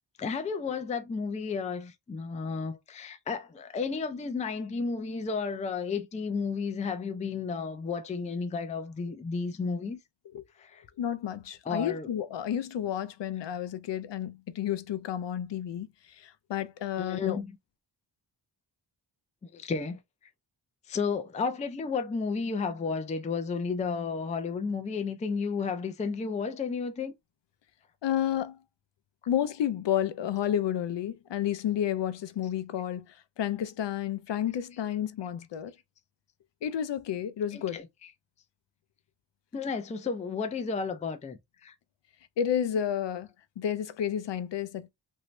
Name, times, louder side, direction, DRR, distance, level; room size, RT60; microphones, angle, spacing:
voice 1, 0.2-10.0 10.6-10.8 11.7-12.1 17.0-17.5 19.5-20.0 20.9-27.1 37.5-38.1 39.5-41.7, left 5 dB, 20° left, 0.3 m, -32 dB
voice 2, 11.0-17.4 28.0-28.6 29.3-35.7 36.6-37.8 42.4-43.3 43.6-44.9, left 10 dB, 70° left, 0.5 m, -31 dB
3.0 x 2.7 x 3.1 m
wide cardioid pair, 165°, 45 cm